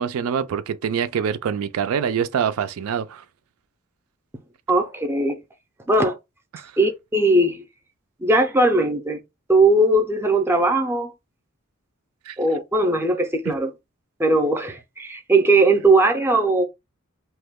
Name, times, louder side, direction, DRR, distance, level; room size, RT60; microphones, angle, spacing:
voice 1, 0.0-3.2 6.5-6.7 12.3-12.4, right 7 dB, 75° right, 0.4 m, -25 dB
voice 2, 4.7-5.4 5.9-6.2 6.8-7.6 8.2-9.2 9.5-11.1 12.4-13.7 14.2-16.6, right 2 dB, 10° right, 0.5 m, -19 dB
2.9 x 2.2 x 3.4 m
head